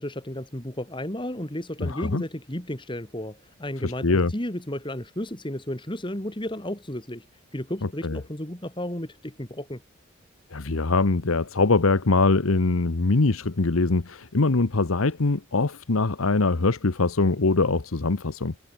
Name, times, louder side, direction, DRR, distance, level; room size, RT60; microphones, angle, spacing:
voice 1, 0.0-7.3 7.5-9.8, left 1 dB, 25° left, 2.5 m, -33 dB
voice 2, 1.8-2.2 3.8-4.3 7.8-8.2 10.5-18.6, left 3 dB, 85° left, 1.0 m, -23 dB
head